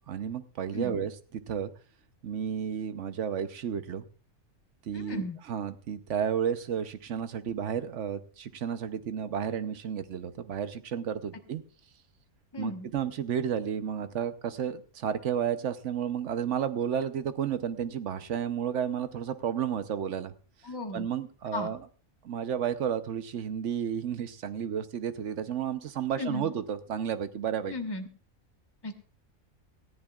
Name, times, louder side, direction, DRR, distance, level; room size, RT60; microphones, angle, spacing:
voice 1, 0.1-1.1 1.5-1.7 2.2-4.0 4.9-5.2 5.5-11.6 12.6-20.3 20.9-21.8 22.2-27.7, right 8 dB, 60° right, 11 dB, 1.1 m, -32 dB
voice 2, 4.9-5.4 12.5-12.9 20.6-21.1 21.5-21.7 26.1-26.5 27.7-28.1 28.8-29.0, left 2 dB, 20° left, 4 dB, 1.2 m, -35 dB
19.0 x 14.0 x 2.4 m, 0.40 s
omnidirectional pair, 1.5 m